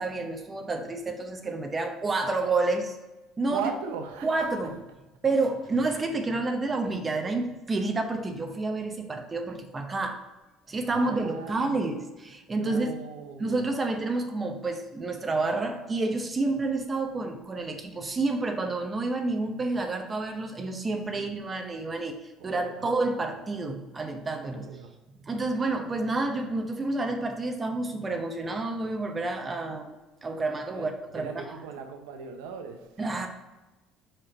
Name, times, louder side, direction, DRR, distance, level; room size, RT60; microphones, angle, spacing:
voice 1, 0.0-3.0 3.4-3.6 4.2-4.8 5.2-10.2 10.7-12.9 13.4-22.2 22.4-24.7 25.2-31.3 33.0-33.3, right 3 dB, 25° right, 0.7 m, -29 dB
voice 2, 3.4-4.5 10.9-11.8 12.5-13.7 21.1-21.3 22.4-22.9 24.5-25.0 30.7-33.0, right 6 dB, 85° right, 0.7 m, -38 dB
4.8 x 4.4 x 4.9 m
supercardioid pair, 85°, 0 cm